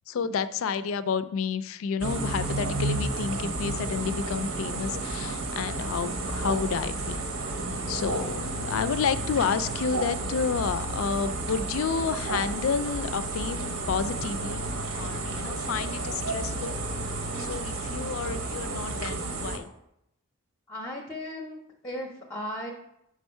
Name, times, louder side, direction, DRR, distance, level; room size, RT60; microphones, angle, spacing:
voice 1, 0.1-7.2 7.9-14.6 14.9-16.8 17.4-19.7, left 6 dB, 65° left, 14 dB, 0.3 m, -30 dB
sound 1, 2.0-19.6, right 2 dB, 75° right, 0.9 m, -32 dB
voice 2, 20.7-22.7, left 1 dB, 15° left, 0 dB, 0.6 m, -36 dB
5.0 x 4.5 x 5.4 m, 0.81 s
head